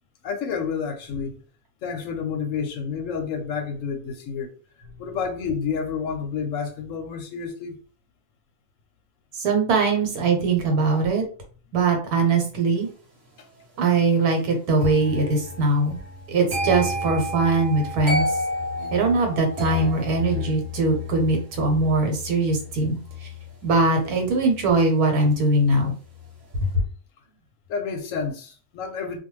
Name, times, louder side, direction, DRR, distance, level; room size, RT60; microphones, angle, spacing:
voice 1, 0.2-1.4 1.8-4.5 5.0-7.8 13.4-13.5 27.7-29.2, left 6 dB, 70° left, 0.9 m, -29 dB
voice 2, 9.4-11.2 11.7-12.9 13.8-16.0 16.3-18.3 18.9-23.0 23.6-25.9, right 3 dB, 80° right, 1.3 m, -21 dB
sound 1, 14.8-25.8 26.1-26.4, left 2 dB, 50° right, 1.1 m, -31 dB
2.5 x 2.3 x 3.1 m
omnidirectional pair, 1.6 m